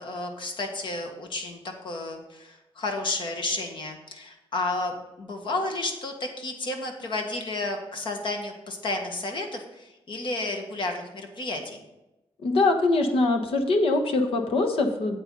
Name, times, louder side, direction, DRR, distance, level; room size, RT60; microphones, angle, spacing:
voice 1, 0.0-11.8, left 2 dB, 55° left, 3 dB, 1.7 m, -32 dB
voice 2, 12.4-15.2, left 2 dB, 70° left, 5 dB, 1.3 m, -23 dB
9.0 x 8.1 x 4.0 m, 0.97 s
cardioid pair, 120°, 10 cm